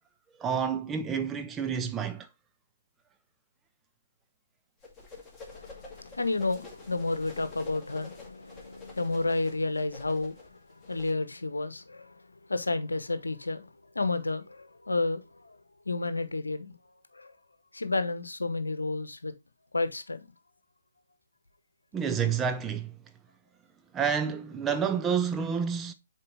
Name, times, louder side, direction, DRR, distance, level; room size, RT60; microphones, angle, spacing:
voice 1, 0.4-2.3 21.9-22.9 23.9-25.9, right 7 dB, 15° right, 0.5 m, -29 dB
sound 1, 4.8-11.1, left 4 dB, 10° left, 2.1 m, -48 dB
voice 2, 5.5-15.6 15.8-16.8 17.1-17.3 17.7-19.3 19.7-20.3, left 3 dB, 80° left, 0.9 m, -31 dB
6.8 x 4.6 x 3.5 m
figure-of-eight pair, 130°, 0 cm